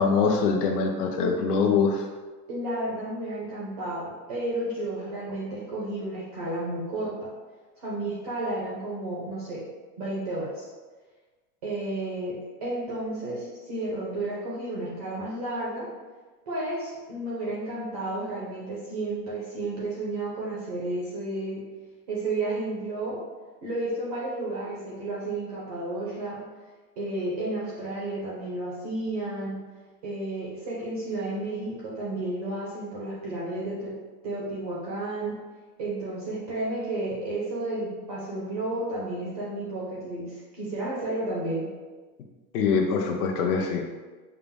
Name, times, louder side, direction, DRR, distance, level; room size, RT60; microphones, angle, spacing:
voice 1, 0.0-2.0 42.5-43.8, left 5 dB, 65° left, 3 dB, 0.8 m, -23 dB
voice 2, 2.5-7.3 7.8-9.6 10.0-10.7 11.6-15.9 16.5-21.6 22.1-23.2 23.6-26.4 27.0-29.6 30.0-33.9 34.2-35.4 35.8-41.7, right 2 dB, 25° right, -5 dB, 0.4 m, -32 dB
5.6 x 2.0 x 3.4 m, 1.3 s
supercardioid pair, 165°, 50 cm